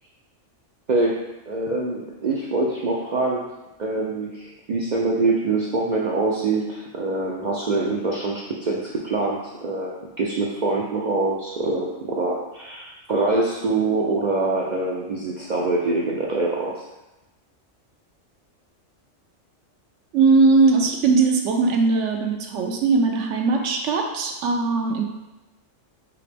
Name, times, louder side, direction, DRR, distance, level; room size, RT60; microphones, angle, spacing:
voice 1, 1.5-3.4 3.8-9.9 10.2-16.7, right 3 dB, 55° right, -4 dB, 0.5 m, -24 dB
voice 2, 20.1-25.0, right 4 dB, 75° right, 3 dB, 0.9 m, -19 dB
5.0 x 2.9 x 3.4 m, 1.0 s
omnidirectional pair, 1.3 m